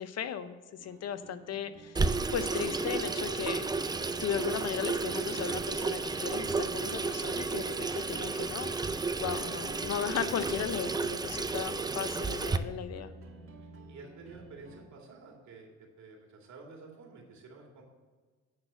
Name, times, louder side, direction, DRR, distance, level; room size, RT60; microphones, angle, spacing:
voice 1, 0.0-2.0 2.3-3.7 4.2-8.9 9.2-13.1, left 9 dB, 55° left, 12 dB, 0.7 m, -36 dB
sound 1, 0.8-14.8, right 2 dB, 45° right, 1.9 m, -53 dB
Water tap faucet / Sink (filling or washing), 1.9-12.6, right 3 dB, 15° right, 0.4 m, -32 dB
voice 2, 13.9-15.7 16.0-17.8, right 4 dB, 65° right, 0 dB, 2.3 m, -50 dB
9.7 x 4.1 x 6.9 m, 1.4 s
cardioid pair, 90°, 30 cm